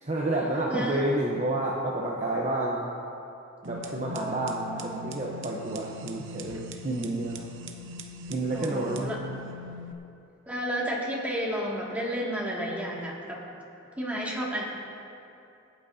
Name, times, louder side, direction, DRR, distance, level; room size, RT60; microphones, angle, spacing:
voice 1, 0.0-2.9 3.6-7.4 8.3-9.1, right 1 dB, 35° right, -3 dB, 1.0 m, -29 dB
voice 2, 0.7-1.0 4.1-5.0 8.5-9.2 10.5-13.4 14.0-14.6, equal, 10° right, -5 dB, 2.3 m, -32 dB
sound 1, 3.6-9.9, left 1 dB, 65° right, 0.8 m, -42 dB
26.5 x 9.0 x 2.8 m, 2.7 s
head